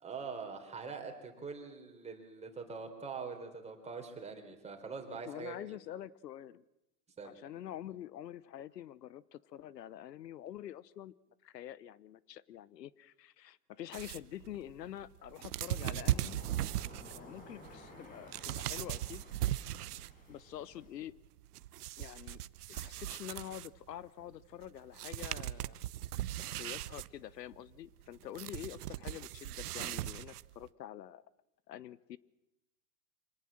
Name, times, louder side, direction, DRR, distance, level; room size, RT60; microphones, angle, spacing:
voice 1, 0.0-5.8 7.2-7.4, right 5 dB, 15° right, 4 dB, 3.7 m, -44 dB
voice 2, 5.2-6.6 7.2-11.1 11.4-16.4 17.1-19.2 20.3-21.1 22.0-22.4 22.7-25.8 26.3-31.2 31.7-32.2, left 12 dB, 85° left, 20 dB, 0.9 m, -46 dB
sound 1, 13.9-20.3 20.6-23.9 24.6-24.7 24.9-30.7, right 14 dB, 70° right, 0.9 m, -38 dB
Waves surf, 15.5-21.0, left 1 dB, 15° left, 6.6 m, -54 dB
25.0 x 18.5 x 7.6 m, 0.94 s
hypercardioid pair, 130°, 48 cm